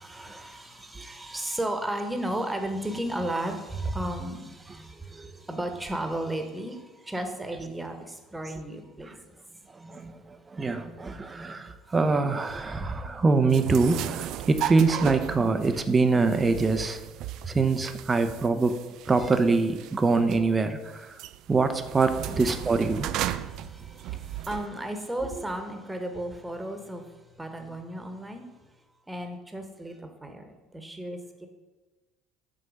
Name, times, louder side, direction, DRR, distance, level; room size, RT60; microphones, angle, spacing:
voice 1, 0.0-9.4 9.8-9.9 12.7-13.0 17.4-17.6 22.9-28.8 29.1-31.5, right 1 dB, 10° right, 5 dB, 1.2 m, -34 dB
voice 2, 9.8-17.0 17.5-18.7 19.1-21.1 21.5-23.1, right 4 dB, 25° right, 9 dB, 0.7 m, -24 dB
sound 1, 13.5-24.7, right 12 dB, 60° right, 0.3 m, -36 dB
6.3 x 4.4 x 6.3 m, 1.2 s
hypercardioid pair, 65°, 0 cm